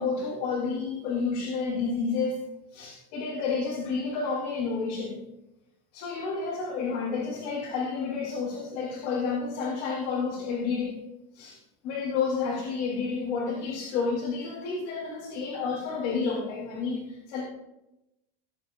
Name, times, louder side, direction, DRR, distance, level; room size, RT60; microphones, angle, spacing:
voice 1, 0.0-2.4 2.7-5.2 5.9-11.0 11.3-11.6 11.8-17.4, left 5 dB, 55° left, -5 dB, 3.8 m, -30 dB
21.0 x 8.2 x 2.6 m, 0.92 s
cardioid pair, 165°, 21 cm